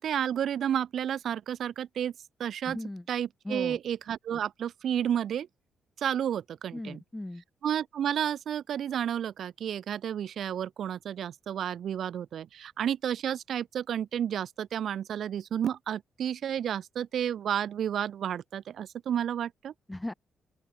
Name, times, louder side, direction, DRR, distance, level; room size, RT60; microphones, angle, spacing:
voice 1, 0.0-2.1 2.4-2.8 3.1-5.5 6.0-7.0 7.6-19.7, right 9 dB, 70° right, 2.9 m, -31 dB
voice 2, 2.7-3.1 3.4-3.8 6.7-7.4 19.9-20.1, left 1 dB, 15° left, 2.2 m, -37 dB
open air
hypercardioid pair, 50°, 0 cm